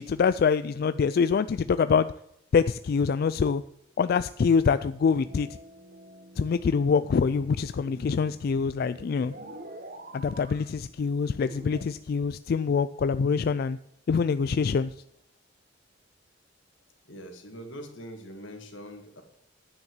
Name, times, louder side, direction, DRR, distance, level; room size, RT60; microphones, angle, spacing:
voice 1, 0.0-2.1 2.5-3.6 4.0-5.5 6.4-9.3 10.1-13.8 14.1-14.9, left 5 dB, 55° left, 14 dB, 0.3 m, -25 dB
sound 1, 5.2-11.8, right 1 dB, 55° right, 1.3 m, -47 dB
voice 2, 17.1-19.2, equal, 80° left, 5 dB, 2.1 m, -43 dB
10.0 x 6.5 x 7.2 m, 0.77 s
head